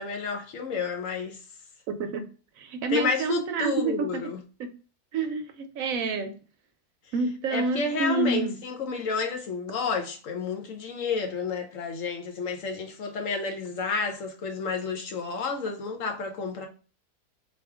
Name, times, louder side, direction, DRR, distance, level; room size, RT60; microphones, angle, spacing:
voice 1, 0.0-1.4 2.9-4.4 7.5-16.7, left 4 dB, 65° left, 1.0 m, -30 dB
voice 2, 1.9-2.2 2.6-4.2 4.6-4.7 5.1-6.3 7.1-8.5, right 4 dB, 70° right, 0.9 m, -28 dB
4.3 x 2.4 x 3.5 m
omnidirectional pair, 1.6 m